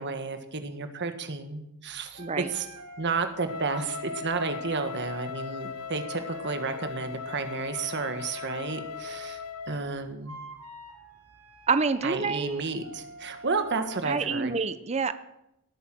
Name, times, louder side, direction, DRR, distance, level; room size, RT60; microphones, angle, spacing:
voice 1, 0.0-2.7 3.0-9.4 9.7-10.4 12.0-14.5, right 4 dB, 50° right, 8 dB, 1.6 m, -32 dB
sound 1, 1.9-14.2, right 1 dB, 85° right, 2.5 m, -48 dB
voice 2, 2.2-2.5 11.7-12.6 14.0-15.1, right 4 dB, 30° right, 12 dB, 0.6 m, -27 dB
Wind instrument woodwind instrument, 3.4-9.9, left 6 dB, 90° left, 0.8 m, -38 dB
18.0 x 8.5 x 7.7 m, 0.85 s
head